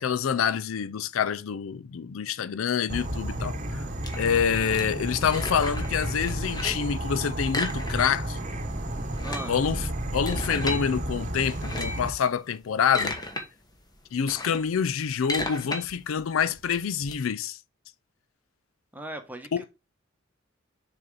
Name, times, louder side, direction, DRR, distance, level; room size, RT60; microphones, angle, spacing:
voice 1, 0.0-3.9 4.2-8.4 9.5-13.2 14.1-17.6 19.5-19.6, left 7 dB, 80° left, 0.4 m, -27 dB
Insect / Frog, 2.9-12.1, right 1 dB, 40° right, 1.0 m, -32 dB
sound 1, 4.0-6.0 6.3-6.9 7.5-8.4 8.6-8.7 9.0-10.8 11.5-12.1 12.6-13.4 13.8-17.1, left 2 dB, 20° left, 1.3 m, -34 dB
voice 2, 18.9-19.6, right 1 dB, 10° right, 1.0 m, -38 dB
6.5 x 4.3 x 3.8 m
head